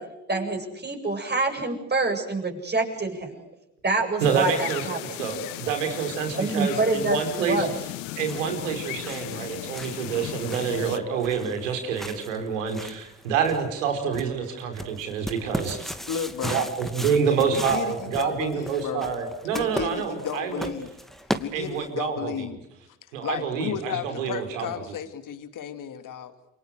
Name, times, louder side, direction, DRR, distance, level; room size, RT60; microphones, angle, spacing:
voice 1, 0.0-3.4 3.8-5.2 6.3-7.8, right 3 dB, 25° right, 3 dB, 8.0 m, -27 dB
sound 1, 4.2-11.0, left 17 dB, 80° left, 1.3 m, -36 dB
voice 2, 4.2-4.8 5.2-7.7 8.2-15.9 16.4-20.7 21.5-22.4 23.1-24.7, right 6 dB, 85° right, 6 dB, 4.8 m, -27 dB
sound 2, 7.9-22.0, equal, ahead, 2.5 m, -38 dB
voice 3, 16.1-16.7 17.3-19.1 19.5-20.9 21.4-22.6 23.2-26.3, left 8 dB, 55° left, 9 dB, 2.7 m, -33 dB
28.5 x 24.0 x 6.5 m, 0.82 s
hypercardioid pair, 55°, 37 cm